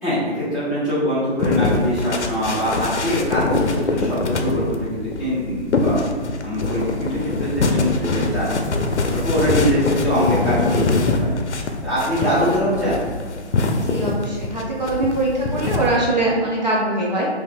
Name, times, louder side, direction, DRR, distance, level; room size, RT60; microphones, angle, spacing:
voice 1, 0.0-6.0 6.4-8.5 9.0-11.3 11.8-13.0, equal, ahead, -15 dB, 0.8 m, -23 dB
sound 1, 1.4-15.9, left 3 dB, 80° left, 0.6 m, -23 dB
voice 2, 13.7-17.3, right 2 dB, 40° right, -5 dB, 0.5 m, -22 dB
5.6 x 2.5 x 2.3 m, 1.5 s
figure-of-eight pair, 150°, 34 cm